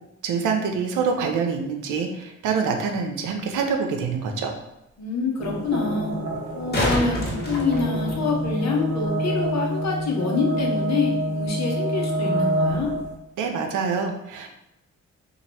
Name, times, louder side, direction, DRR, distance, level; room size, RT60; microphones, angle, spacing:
voice 1, 0.2-4.5 13.4-14.5, right 5 dB, 80° right, 4 dB, 0.6 m, -25 dB
sound 1, 3.5-3.6 6.4-8.5 11.4-11.5, left 1 dB, 30° left, 1.3 m, -27 dB
voice 2, 5.0-6.1 6.5-12.9, left 4 dB, 60° left, -1 dB, 1.1 m, -26 dB
sound 2, 5.4-13.1, right 1 dB, 50° right, 0.9 m, -27 dB
3.1 x 2.5 x 4.1 m, 0.87 s
supercardioid pair, 50°, 31 cm